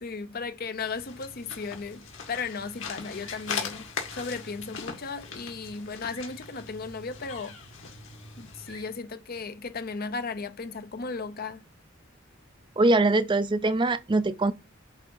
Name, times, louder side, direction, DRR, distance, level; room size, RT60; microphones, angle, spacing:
voice 1, 0.0-3.9 4.1-7.6 8.4-11.6, left 4 dB, 50° left, 0.7 m, -35 dB
sound 1, 0.7-9.0, left 5 dB, 70° left, 2.1 m, -40 dB
voice 2, 12.8-14.5, right 2 dB, 25° right, 0.4 m, -22 dB
8.0 x 2.8 x 5.4 m
head